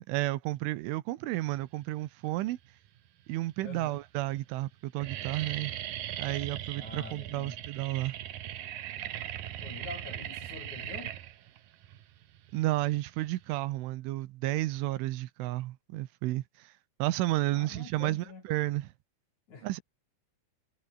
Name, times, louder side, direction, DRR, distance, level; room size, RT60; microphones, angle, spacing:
voice 1, 0.0-2.6 3.3-5.7 6.2-8.2 12.5-16.7 17.0-18.9 19.6-19.8, right 17 dB, 80° right, 3.5 m, -32 dB
sound 1, 2.5-3.0 3.6-3.7 4.0-4.4 4.6-13.6, right 12 dB, 65° right, 2.4 m, -39 dB
voice 2, 3.6-4.0 6.8-7.6 9.6-11.2 17.5-18.4 19.5-19.7, left 4 dB, 40° left, 5.6 m, -45 dB
omnidirectional pair, 5.6 m